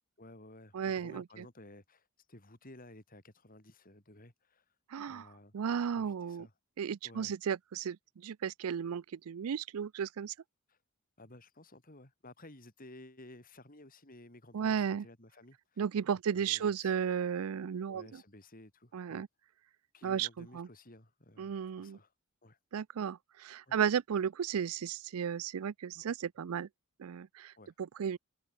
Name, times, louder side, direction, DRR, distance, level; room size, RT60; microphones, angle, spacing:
voice 1, 0.2-4.6 5.1-5.5 5.9-6.5 7.0-7.3 10.7-10.8 11.2-15.8 16.3-16.9 17.9-19.2 19.9-22.1 22.4-22.6 23.7-23.8 27.6-27.7, left 1 dB, 40° left, 4.4 m, -55 dB
voice 2, 0.7-1.4 4.9-5.3 5.5-6.5 6.8-10.3 14.5-15.1 15.8-18.2 18.9-19.3 20.0-20.7 21.4-22.0 22.7-26.7 27.0-27.5 27.8-28.2, right 7 dB, 80° right, 0.4 m, -34 dB
open air
head